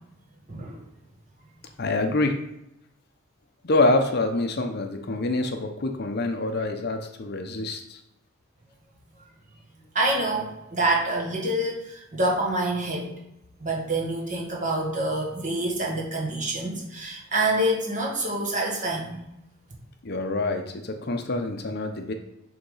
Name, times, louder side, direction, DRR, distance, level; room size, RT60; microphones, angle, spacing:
voice 1, 0.5-0.8 9.9-13.1 13.6-19.3, right 1 dB, 35° right, -1 dB, 1.5 m, -26 dB
voice 2, 1.8-2.3 3.6-8.0 20.0-22.1, left 2 dB, 50° left, 5 dB, 0.7 m, -26 dB
6.7 x 3.6 x 5.5 m, 0.85 s
head